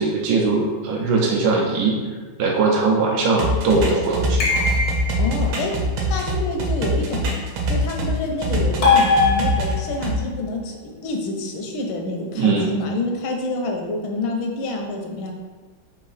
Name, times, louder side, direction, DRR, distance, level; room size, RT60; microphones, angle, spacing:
voice 1, 0.0-2.0 2.4-4.7 12.4-12.7, right 3 dB, 75° right, -1 dB, 1.1 m, -20 dB
sound 1, 3.4-8.1 8.4-10.1, right 1 dB, 90° right, 1.6 m, -23 dB
sound 2, 4.4-5.3 8.8-10.0, left 4 dB, 65° left, 0.6 m, -19 dB
voice 2, 5.2-5.7 6.1-7.3 7.7-15.3, left 2 dB, 80° left, 2 dB, 1.4 m, -27 dB
4.1 x 2.7 x 3.9 m, 1.3 s
omnidirectional pair, 2.2 m